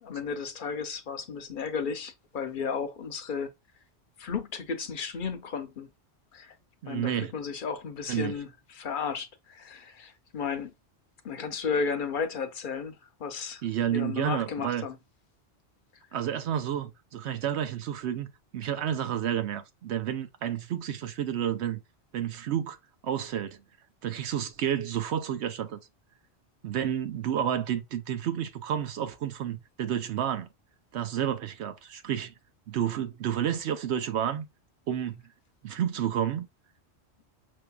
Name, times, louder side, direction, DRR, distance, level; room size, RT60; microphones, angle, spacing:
voice 1, 0.0-3.5 4.2-5.9 6.3-6.5 6.9-10.7 11.2-13.6 13.9-15.0, left 5 dB, 55° left, 0.7 m, -34 dB
voice 2, 6.8-7.3 8.1-8.3 13.6-14.8 16.1-21.8 22.1-22.8 23.0-23.6 24.0-25.8 26.6-30.5 30.9-32.3 32.7-34.5 34.9-35.1 35.6-36.5, right 10 dB, 80° right, 0.9 m, -30 dB
6.1 x 2.7 x 2.2 m
omnidirectional pair, 1.1 m